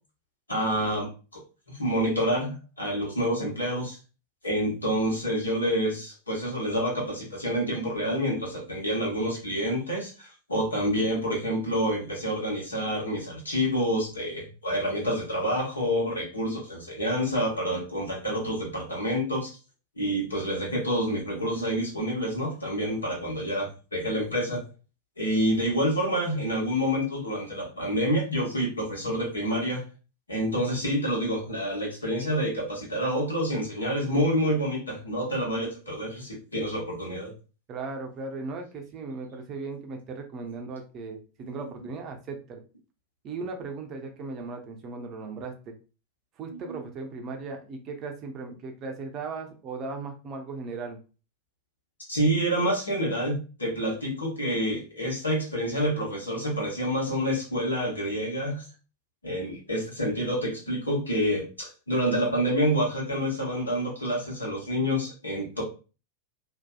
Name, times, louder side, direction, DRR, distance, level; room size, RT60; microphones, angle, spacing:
voice 1, 0.5-1.4 1.7-4.0 4.4-19.6 20.0-24.6 25.2-29.8 30.3-37.3 46.5-46.8 52.1-58.6 59.2-65.6, equal, 80° left, -3 dB, 1.1 m, -28 dB
voice 2, 37.7-42.6 43.2-45.7 46.4-51.0, right 4 dB, 35° right, 3 dB, 0.5 m, -37 dB
2.6 x 2.3 x 2.2 m, 0.34 s
figure-of-eight pair, 90°, 0 cm